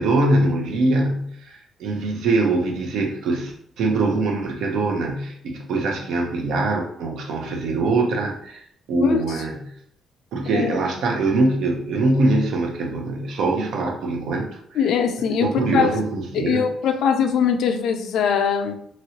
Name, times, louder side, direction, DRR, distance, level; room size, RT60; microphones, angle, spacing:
voice 1, 0.0-9.7 10.3-14.8 15.4-16.7, right 2 dB, 80° right, 2 dB, 0.7 m, -23 dB
voice 2, 14.8-15.9 16.3-18.7, left 7 dB, 75° left, 7 dB, 0.4 m, -21 dB
3.0 x 2.9 x 2.8 m, 0.68 s
cardioid pair, 90°, 0 cm